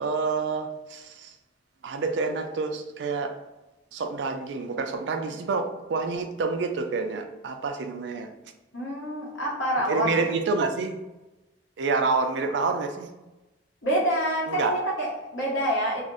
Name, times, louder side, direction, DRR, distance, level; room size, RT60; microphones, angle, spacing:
voice 1, 0.0-1.3 1.8-3.3 3.9-8.3 9.9-11.0 11.8-13.1 14.5-14.8, right 4 dB, 65° right, 5 dB, 0.4 m, -28 dB
voice 2, 8.7-10.2 13.8-16.0, equal, 80° left, -5 dB, 1.0 m, -27 dB
2.5 x 2.0 x 3.6 m, 1.0 s
head